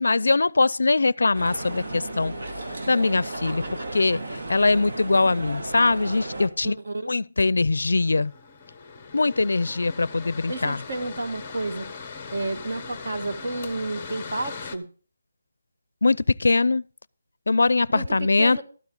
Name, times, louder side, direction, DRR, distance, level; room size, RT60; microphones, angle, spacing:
voice 1, 0.0-2.3 2.9-3.6 3.9-6.8 7.1-8.3 9.1-10.8 16.0-16.8 17.5-18.6, left 3 dB, 75° left, 0.4 m, -22 dB
sound 1, 1.3-6.5, right 2 dB, 75° right, 2.3 m, -34 dB
voice 2, 6.6-7.1 10.5-14.8 17.9-18.6, right 2 dB, 55° right, 1.6 m, -31 dB
Mechanical fan, 7.7-14.8, left 5 dB, 15° left, 0.8 m, -40 dB
12.5 x 9.6 x 3.9 m
hypercardioid pair, 175°, 0 cm